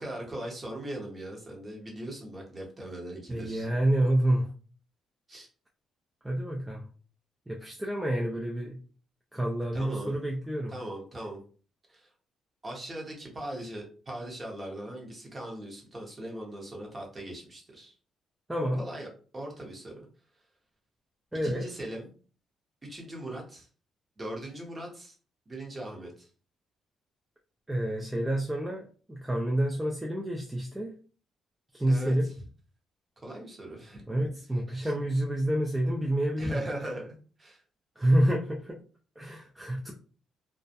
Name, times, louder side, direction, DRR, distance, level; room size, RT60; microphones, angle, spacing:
voice 1, 0.0-3.7 5.3-5.5 9.7-10.2 10.7-11.4 11.9-12.1 12.6-17.9 18.8-19.1 19.3-20.1 21.4-22.1 22.9-23.7 24.2-25.1 25.5-26.3 31.9-32.3 33.2-34.1 34.8-34.9 36.4-37.6, right 1 dB, 25° right, 0 dB, 0.9 m, -39 dB
voice 2, 3.3-4.5 6.2-6.8 7.5-8.8 9.3-10.7 18.5-18.8 21.3-21.6 27.7-30.9 31.7-32.3 34.1-36.6 38.0-38.8 39.2-39.9, right 1 dB, 10° right, -1 dB, 0.4 m, -28 dB
2.3 x 2.1 x 2.7 m, 0.39 s
cardioid pair, 90°, 0 cm